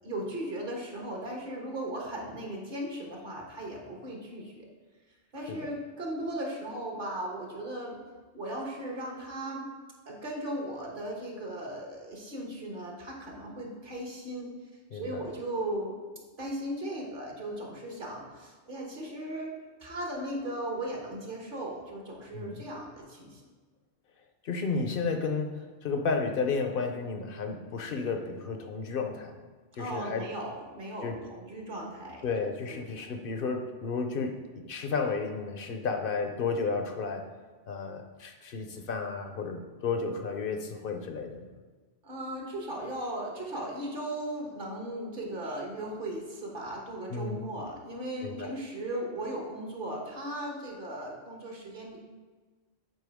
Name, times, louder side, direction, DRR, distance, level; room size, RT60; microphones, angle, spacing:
voice 1, 0.0-4.7 5.3-8.0 8.3-9.7 10.1-14.5 14.9-15.9 16.4-19.5 19.8-23.4 29.8-32.3 32.7-32.9 42.0-52.0, right 1 dB, 50° right, -1 dB, 1.3 m, -37 dB
voice 2, 14.9-15.2 22.3-22.6 24.4-29.3 29.8-30.2 31.0-31.2 32.2-37.3 37.7-41.5 47.1-47.4 48.2-48.5, left 4 dB, 60° left, 5 dB, 0.7 m, -32 dB
7.8 x 4.4 x 3.5 m, 1.4 s
omnidirectional pair, 1.2 m